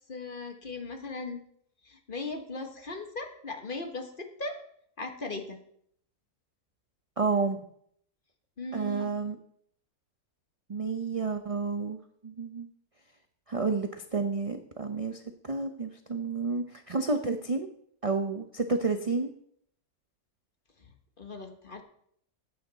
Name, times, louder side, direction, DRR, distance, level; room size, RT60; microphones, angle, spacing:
voice 1, 0.1-1.4 1.9-4.6 5.0-5.6 8.6-9.1 21.2-21.8, left 3 dB, 35° left, 5 dB, 1.3 m, -38 dB
voice 2, 7.2-7.6 8.7-9.4 10.7-12.0 12.2-12.7 13.5-17.7 18.0-19.3, right 4 dB, 40° right, 6 dB, 0.5 m, -30 dB
15.0 x 8.6 x 4.0 m, 0.68 s
omnidirectional pair, 1.6 m